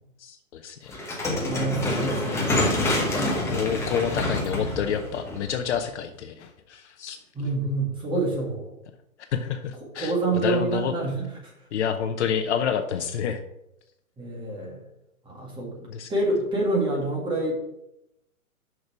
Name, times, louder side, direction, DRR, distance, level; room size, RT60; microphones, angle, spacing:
voice 1, 0.2-1.1 1.8-2.1 3.0-7.2 9.3-10.9 11.7-13.4 15.9-16.1, left 8 dB, 50° left, 7 dB, 0.7 m, -29 dB
sound 1, 0.9-6.0, left 1 dB, 5° left, 1.0 m, -27 dB
voice 2, 1.4-2.7 3.1-3.3 7.3-8.7 10.0-11.5 14.2-14.8 15.2-17.6, right 2 dB, 10° right, -2 dB, 2.0 m, -27 dB
6.3 x 6.1 x 5.8 m, 0.85 s
hypercardioid pair, 140°, 43 cm